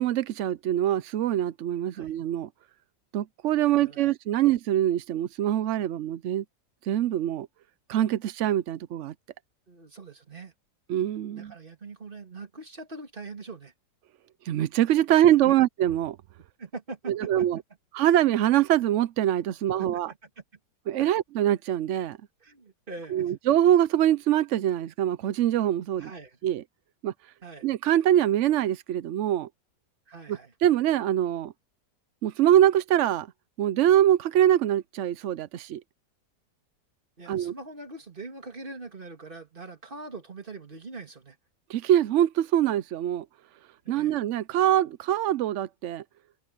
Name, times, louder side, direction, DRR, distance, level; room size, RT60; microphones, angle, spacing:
voice 1, 0.0-2.5 3.1-6.4 6.9-7.5 7.9-9.1 10.9-11.5 14.4-16.2 17.1-17.6 17.9-20.1 20.9-22.2 23.1-26.1 26.4-26.6 27.0-27.1 27.6-29.5 30.3-31.5 32.2-33.3 33.6-35.8 37.3-37.5 41.7-43.2 43.9-46.0, right 11 dB, 75° right, 0.6 m, -24 dB
voice 2, 3.7-4.1 9.7-10.5 11.3-13.7 15.4-15.5 16.6-17.5 19.8-20.4 21.0-21.1 22.4-23.3 26.0-26.4 27.4-27.7 30.1-30.5 37.2-41.4 43.8-44.2, right 3 dB, 30° right, 2.4 m, -42 dB
omnidirectional pair, 1.9 m